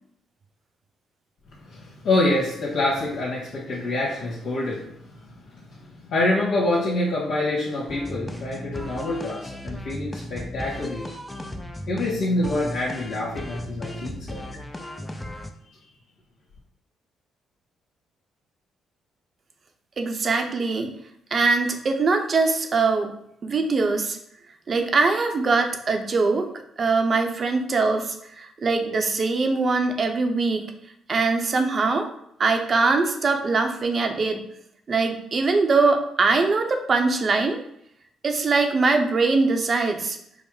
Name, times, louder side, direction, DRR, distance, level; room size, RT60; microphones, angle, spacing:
voice 1, 1.7-4.9 5.2-5.6 6.1-11.1 11.9-14.4, left 2 dB, 70° left, -7 dB, 1.4 m, -26 dB
sound 1, 7.9-15.5, left 1 dB, 10° left, 0.5 m, -36 dB
voice 2, 20.0-20.9 21.3-23.1 23.4-24.2 24.7-26.5 26.8-30.6 31.1-32.1 32.4-34.4 34.9-37.6 38.2-40.2, right 3 dB, 40° right, 5 dB, 0.7 m, -22 dB
5.4 x 2.1 x 4.8 m, 0.74 s
cardioid pair, 90°, 0 cm